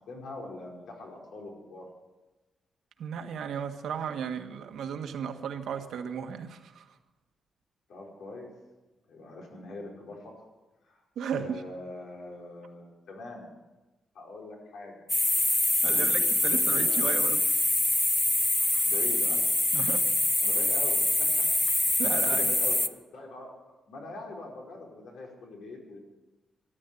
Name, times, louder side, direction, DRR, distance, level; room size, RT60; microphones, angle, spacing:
voice 1, 0.0-1.8 7.9-8.5 9.0-10.4 10.8-11.0 11.4-13.5 14.1-15.0 15.8-17.2 18.8-19.4 20.4-21.5 22.1-22.8 23.1-23.5 23.9-26.0, left 2 dB, 90° left, -1 dB, 4.9 m, -43 dB
voice 2, 3.0-7.0 11.1-11.6 15.8-17.4 18.7-18.9 19.7-20.1 22.0-22.5, right 7 dB, 85° right, 6 dB, 1.5 m, -35 dB
sound 1, 15.1-22.9, left 2 dB, 15° left, 0.7 m, -25 dB
13.5 x 12.5 x 8.3 m, 1.1 s
wide cardioid pair, 155°, 0 cm